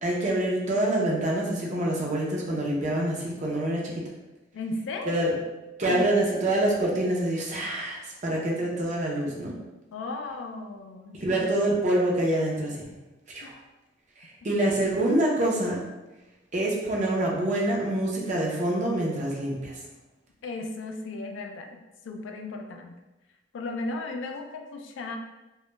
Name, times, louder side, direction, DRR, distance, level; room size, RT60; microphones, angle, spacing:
voice 1, 0.0-3.9 5.1-5.3 5.8-9.5 11.2-12.8 13.3-13.6 14.4-15.8 16.5-19.7, right 1 dB, 40° right, -2 dB, 0.5 m, -26 dB
voice 2, 4.5-5.3 5.9-6.0 9.9-11.4 13.4-13.5 20.4-21.8 22.0-23.0 23.5-25.2, left 2 dB, 85° left, 5 dB, 0.3 m, -35 dB
2.2 x 2.1 x 3.0 m, 1.0 s
head